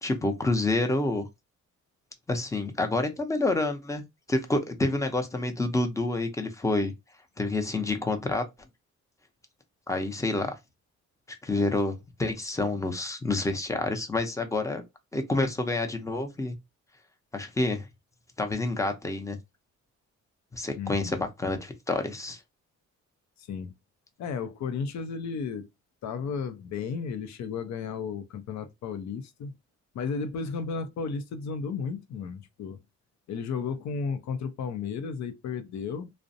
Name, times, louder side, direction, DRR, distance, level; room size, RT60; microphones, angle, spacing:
voice 1, 0.0-1.3 2.3-6.9 7.4-8.4 9.9-10.6 11.4-14.8 15.1-16.6 17.3-17.9 18.4-19.4 20.5-22.4, left 2 dB, 10° left, 0.6 m, -28 dB
voice 2, 20.8-21.2 23.4-23.7 24.2-25.7 26.0-29.5 29.9-32.8 33.3-36.1, left 5 dB, 65° left, 0.6 m, -33 dB
2.4 x 2.0 x 2.6 m
cardioid pair, 90°, 30 cm